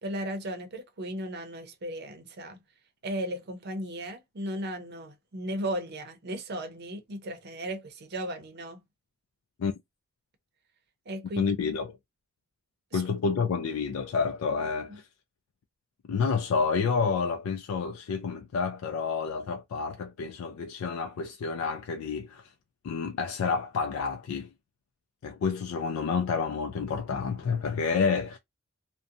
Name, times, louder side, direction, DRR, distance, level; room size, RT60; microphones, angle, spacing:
voice 1, 0.0-2.6 3.0-8.8 11.1-11.4 12.9-13.0 14.9-15.0, right 1 dB, 50° right, 0.6 m, -36 dB
voice 2, 11.4-12.0 12.9-15.1 16.0-22.5 22.8-24.5 25.2-28.4, left 5 dB, 80° left, 0.3 m, -29 dB
2.6 x 2.1 x 2.4 m
head